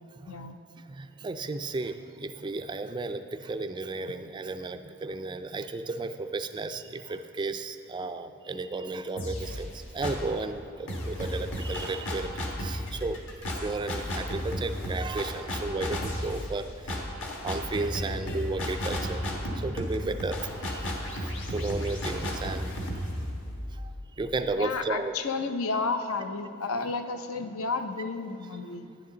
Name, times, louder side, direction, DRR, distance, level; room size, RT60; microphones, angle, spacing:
voice 1, 0.3-0.6 12.2-12.3 22.8-22.9 24.6-28.9, left 4 dB, 75° left, 8 dB, 0.6 m, -32 dB
voice 2, 0.9-12.3 12.6-13.2 13.6-16.7 17.4-19.2 19.6-20.9 21.2-22.7 24.2-25.1, right 3 dB, 20° right, 9 dB, 0.3 m, -33 dB
sound 1, 9.2-10.4 10.9-24.6, equal, 60° left, 1.4 m, -34 dB
11.0 x 10.0 x 3.9 m, 2.6 s
head